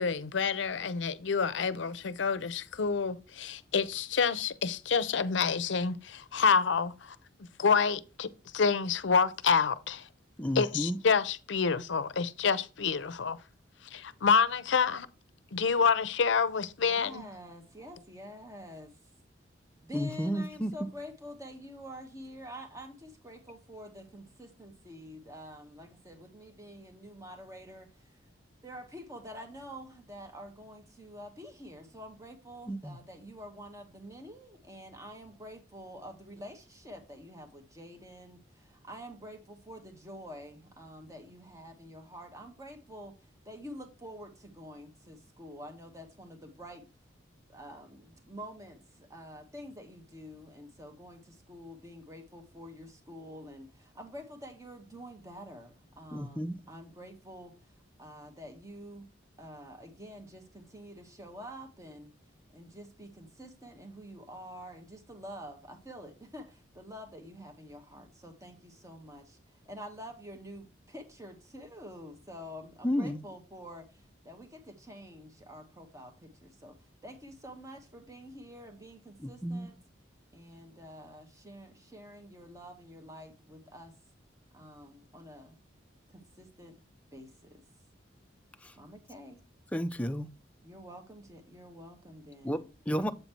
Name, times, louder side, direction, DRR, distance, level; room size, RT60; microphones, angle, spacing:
voice 1, 0.0-7.2 7.6-10.1 10.6-13.4 13.9-15.1 15.5-17.2, left 5 dB, 75° left, 0.6 m, -28 dB
voice 2, 10.4-11.0 19.9-20.7 32.7-33.0 56.1-56.6 72.8-73.2 79.2-79.7 88.6-88.7 89.7-90.3 92.4-93.1, equal, 5° left, 0.5 m, -32 dB
voice 3, 16.8-18.9 19.8-28.2 28.6-46.9 47.5-57.7 58.0-59.0 59.4-62.1 62.5-79.8 80.3-83.9 84.5-85.6 86.1-86.8 87.1-87.6 88.8-89.4 90.6-92.7, equal, 15° right, 1.3 m, -48 dB
7.9 x 4.1 x 4.4 m
head